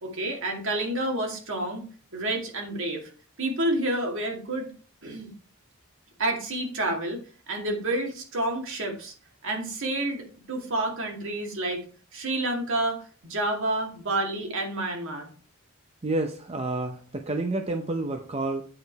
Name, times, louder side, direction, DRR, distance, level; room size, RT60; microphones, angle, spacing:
voice 1, 0.0-1.9 2.1-3.1 3.4-4.7 5.0-5.3 6.2-7.2 7.5-9.1 9.4-11.8 12.1-15.3, right 1 dB, 65° right, 2 dB, 2.2 m, -29 dB
voice 2, 16.0-18.6, right 2 dB, 30° right, 5 dB, 0.7 m, -29 dB
8.6 x 5.0 x 4.6 m, 0.40 s
head